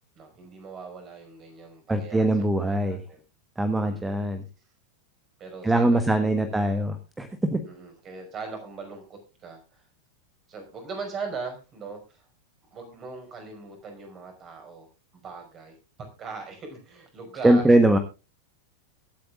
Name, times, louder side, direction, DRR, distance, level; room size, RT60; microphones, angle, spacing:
voice 1, 0.1-3.2 3.8-4.2 5.4-6.5 7.7-9.8 10.5-12.2 12.7-14.9 15.1-17.6, right 4 dB, 30° right, 4 dB, 5.1 m, -40 dB
voice 2, 1.9-3.0 3.6-4.4 5.6-7.6 17.4-18.0, right 1 dB, 10° right, 8 dB, 1.3 m, -22 dB
23.5 x 8.6 x 2.4 m, 0.30 s
figure-of-eight pair, 90°, 0 cm